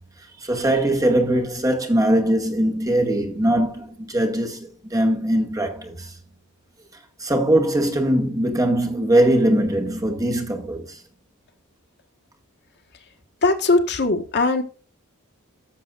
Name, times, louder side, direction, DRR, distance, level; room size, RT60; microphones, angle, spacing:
voice 1, 0.4-6.1 7.2-10.9, right 1 dB, 15° right, 2.0 m, -21 dB
voice 2, 13.4-14.6, left 3 dB, 55° left, 1.6 m, -19 dB
13.5 x 7.3 x 2.5 m
head